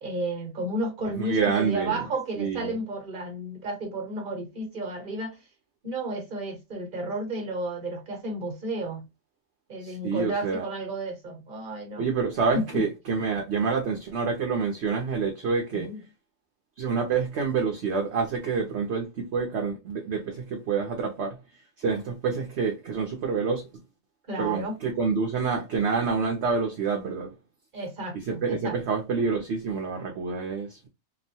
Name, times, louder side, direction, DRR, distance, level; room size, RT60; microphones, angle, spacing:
voice 1, 0.0-5.4 5.8-9.0 9.7-12.0 12.5-12.8 15.7-16.0 24.3-24.8 27.7-28.8, right 1 dB, 40° right, 1.2 m, -32 dB
voice 2, 1.2-2.0 2.4-2.7 9.8-10.6 12.0-15.9 16.8-21.4 21.8-23.6 24.4-27.3 28.1-30.9, right 5 dB, 55° right, 0.9 m, -27 dB
3.0 x 2.1 x 2.7 m
omnidirectional pair, 1.5 m